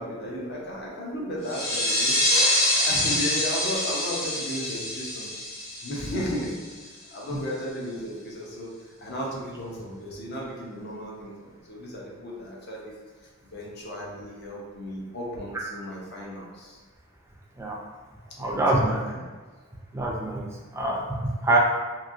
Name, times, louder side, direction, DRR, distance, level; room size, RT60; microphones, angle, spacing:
voice 1, 0.0-2.2 2.7-5.3 5.8-6.5 7.1-8.7 9.0-12.9 13.4-16.8 18.5-19.2, equal, 55° left, -4 dB, 0.6 m, -34 dB
sound 1, 1.5-6.8, left 1 dB, 90° left, 0.9 m, -26 dB
voice 2, 18.4-19.0 19.9-20.5 20.7-21.6, right 2 dB, 15° right, -2 dB, 0.4 m, -25 dB
2.9 x 2.6 x 2.5 m, 1.4 s
head